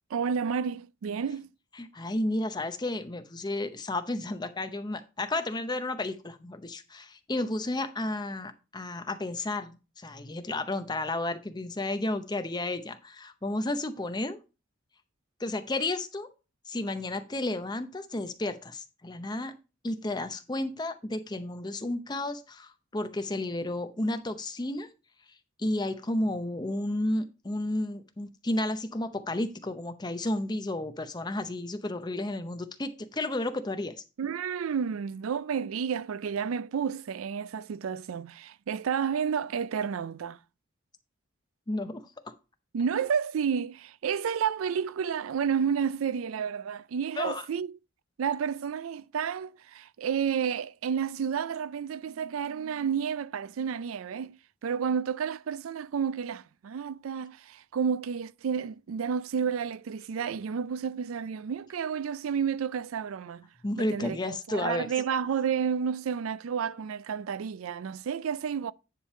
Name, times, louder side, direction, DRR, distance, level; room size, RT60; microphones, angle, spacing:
voice 1, 0.1-1.5 34.2-40.4 42.7-47.7 48.2-54.4 54.6-63.5 63.8-68.7, right 7 dB, 90° right, 0.4 m, -31 dB
voice 2, 1.8-14.4 15.4-16.3 16.7-19.5 19.8-24.9 25.6-34.0 41.7-42.0 47.2-47.4 63.6-64.9, left 2 dB, 20° left, 0.7 m, -32 dB
10.0 x 3.4 x 5.5 m
head